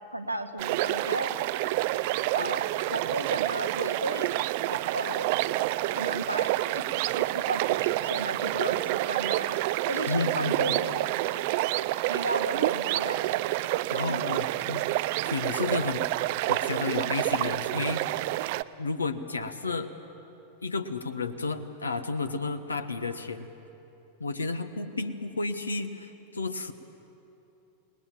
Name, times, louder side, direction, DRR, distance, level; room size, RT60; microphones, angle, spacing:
voice 1, 0.1-1.3 2.3-4.3 4.6-5.4 5.9-6.8 7.1-9.6 9.9-11.3 12.1-13.3 14.0-14.3, right 1 dB, 90° right, 5 dB, 1.3 m, -34 dB
sound 1, 0.6-18.6, right 17 dB, 50° right, 0.4 m, -28 dB
voice 2, 10.1-10.8 13.9-14.8 15.2-16.1 16.5-18.0 18.8-19.9 20.6-23.5 24.2-26.7, left 3 dB, 75° left, 10 dB, 1.2 m, -32 dB
28.5 x 20.0 x 7.3 m, 3.0 s
figure-of-eight pair, 90°, 0 cm